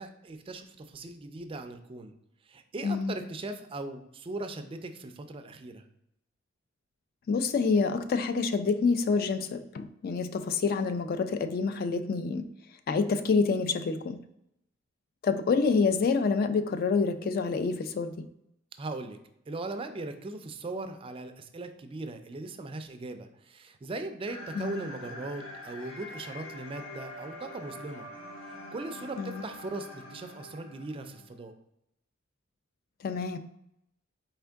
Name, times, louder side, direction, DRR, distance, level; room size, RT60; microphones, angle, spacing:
voice 1, 0.0-2.1 2.5-5.9 18.8-19.2 19.5-28.1 28.5-31.5, right 2 dB, 25° right, 8 dB, 0.4 m, -39 dB
voice 2, 2.8-3.1 7.3-12.5 12.9-14.2 15.2-18.3 24.6-24.9 29.2-29.4 33.0-33.4, left 4 dB, 45° left, 10 dB, 0.3 m, -27 dB
sound 1, 24.3-31.4, left 1 dB, 80° left, 1.0 m, -44 dB
4.4 x 3.6 x 3.4 m, 0.79 s
head